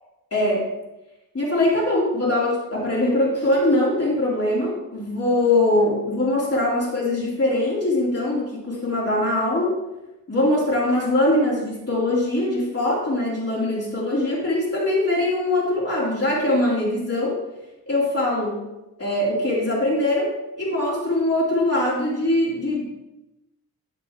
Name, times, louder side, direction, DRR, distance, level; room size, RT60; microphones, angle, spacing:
voice 1, 0.3-0.7 1.3-9.8 10.3-17.4 17.9-18.6 19.0-20.3 20.6-22.9, left 1 dB, 40° left, -6 dB, 3.1 m, -22 dB
12.5 x 5.2 x 3.7 m, 0.98 s
cardioid pair, 70°, 37 cm